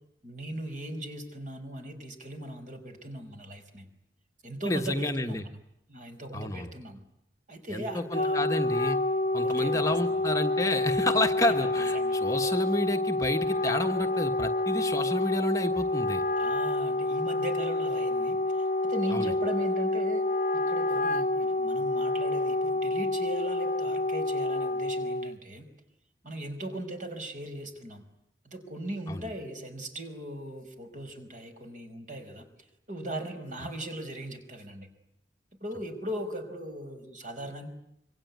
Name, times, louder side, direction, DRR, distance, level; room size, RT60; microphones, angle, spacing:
voice 1, 0.2-3.9 4.4-5.6 5.9-7.0 7.5-8.4 9.4-9.8 10.1-10.2 11.6-12.2 16.4-20.2 20.5-25.7 26.2-28.0 28.4-32.4 32.9-34.9 35.6-37.7, right 1 dB, 45° right, 6 dB, 4.9 m, -38 dB
voice 2, 4.7-5.4 6.3-6.7 7.7-9.0 9.3-16.2 19.1-19.3 29.1-29.2, left 1 dB, 20° left, 4 dB, 1.2 m, -30 dB
Wind instrument woodwind instrument, 7.9-25.4, left 2 dB, 40° left, 1.1 m, -28 dB
26.0 x 24.0 x 9.5 m, 0.78 s
head